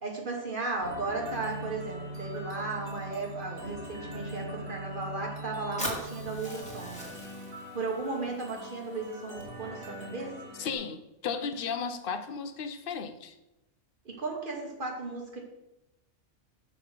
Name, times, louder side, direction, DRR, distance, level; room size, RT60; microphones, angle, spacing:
voice 1, 0.0-7.1 7.7-10.3 14.0-15.4, right 3 dB, 45° right, 1 dB, 1.4 m, -35 dB
sound 1, 0.8-10.7, right 1 dB, 80° right, 1.8 m, -42 dB
Fire, 5.8-9.8, left 1 dB, 5° left, 1.5 m, -42 dB
voice 2, 10.6-13.4, left 6 dB, 55° left, 9 dB, 0.8 m, -34 dB
6.4 x 5.8 x 4.9 m, 0.94 s
omnidirectional pair, 1.3 m